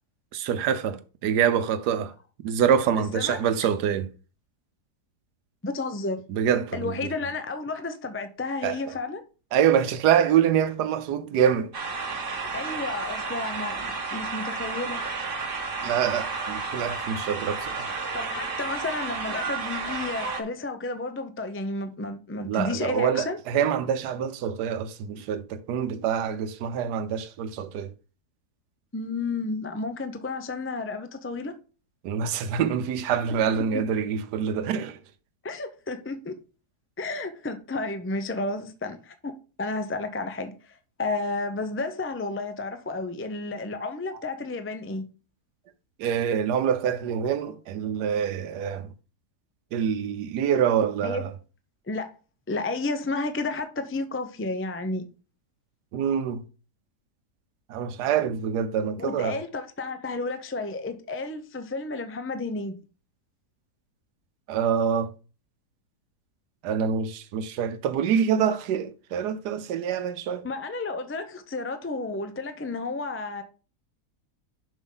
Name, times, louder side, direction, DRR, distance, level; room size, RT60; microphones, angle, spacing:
voice 1, 0.3-2.1 2.4-4.1 6.3-6.9 8.6-8.9 9.5-11.7 15.8-17.9 22.4-27.9 32.0-35.0 46.0-48.9 49.7-51.3 55.9-56.4 57.7-59.4 64.5-65.1 66.6-70.4, right 8 dB, 90° right, 1.3 m, -25 dB
voice 2, 5.6-6.2 6.7-9.2 12.5-15.0 18.1-23.4 28.9-31.5 33.7-33.9 35.4-36.4 37.0-45.0 51.0-51.3 51.9-52.1 52.5-55.0 59.0-62.8 70.4-73.4, left 3 dB, 15° left, 0.4 m, -32 dB
sound 1, 11.7-20.4, right 4 dB, 35° right, 1.3 m, -32 dB
7.3 x 6.0 x 3.9 m
omnidirectional pair, 1.7 m